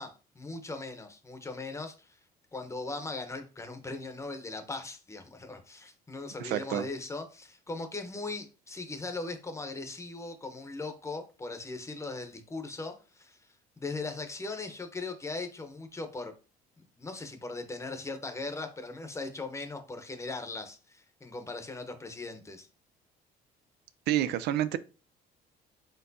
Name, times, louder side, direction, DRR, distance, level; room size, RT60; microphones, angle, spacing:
voice 1, 0.0-2.1 2.5-13.4 13.8-16.3 16.8-22.7, left 3 dB, 15° left, 0.8 m, -39 dB
voice 2, 6.4-6.8 24.1-24.8, right 12 dB, 80° right, 0.4 m, -28 dB
4.4 x 3.7 x 2.7 m
cardioid pair, 110°, 17 cm